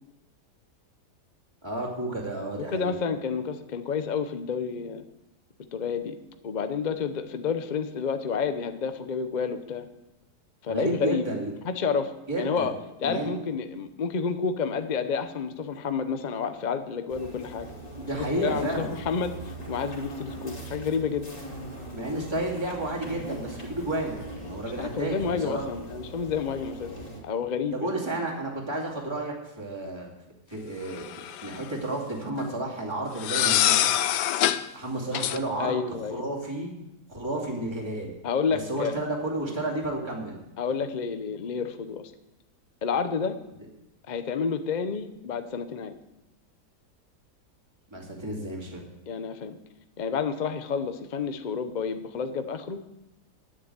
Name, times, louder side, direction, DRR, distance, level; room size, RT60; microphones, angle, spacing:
voice 1, 1.6-3.0 10.7-11.5 12.3-12.7 13.0-13.3 18.0-18.9 21.9-25.7 27.7-30.1 30.5-31.1 31.4-33.9 34.7-35.7 36.1-36.7 37.1-38.1 38.5-40.4 47.9-48.8, right 1 dB, 15° right, -3 dB, 2.5 m, -31 dB
voice 2, 2.7-5.0 5.7-6.2 6.4-9.9 10.6-11.2 11.6-12.7 13.0-17.7 18.2-21.3 24.7-26.9 27.2-28.0 35.6-36.2 38.2-39.0 40.6-42.1 42.8-43.4 44.1-45.9 49.1-49.6 50.0-52.8, left 6 dB, 45° left, 9 dB, 0.6 m, -30 dB
sound 1, 17.1-27.2, right 1 dB, 20° left, 2.4 m, -40 dB
sound 2, 30.9-31.6 33.2-34.6 35.1-35.4, left 12 dB, 80° left, 1.2 m, -24 dB
10.0 x 8.7 x 8.1 m, 0.93 s
omnidirectional pair, 1.8 m